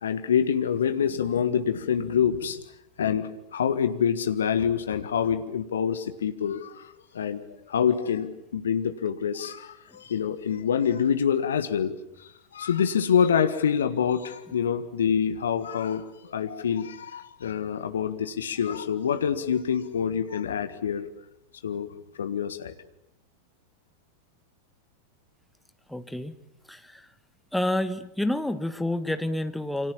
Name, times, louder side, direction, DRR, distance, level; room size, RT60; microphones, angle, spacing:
voice 1, 0.0-2.6 3.0-7.4 7.7-21.1 21.6-21.9 22.1-22.7, left 7 dB, 65° left, 11 dB, 1.6 m, -26 dB
voice 2, 25.9-26.3 26.7-27.1 27.5-29.9, left 1 dB, ahead, 9 dB, 1.5 m, -29 dB
29.0 x 26.0 x 7.3 m, 0.81 s
figure-of-eight pair, 90°, 0 cm